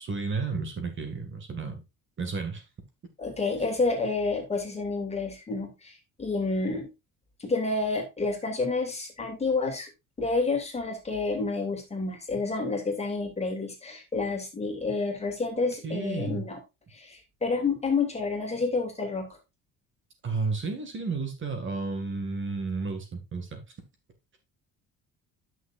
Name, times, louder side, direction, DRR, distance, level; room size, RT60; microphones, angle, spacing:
voice 1, 0.0-1.8 2.2-2.6 15.8-16.5 20.2-23.6, right 4 dB, 35° right, 6 dB, 2.1 m, -32 dB
voice 2, 3.2-6.9 7.4-9.9 10.2-16.6 16.9-19.3, left 3 dB, 20° left, 3 dB, 2.8 m, -29 dB
11.0 x 6.5 x 2.6 m, 0.24 s
cardioid pair, 130°, 35 cm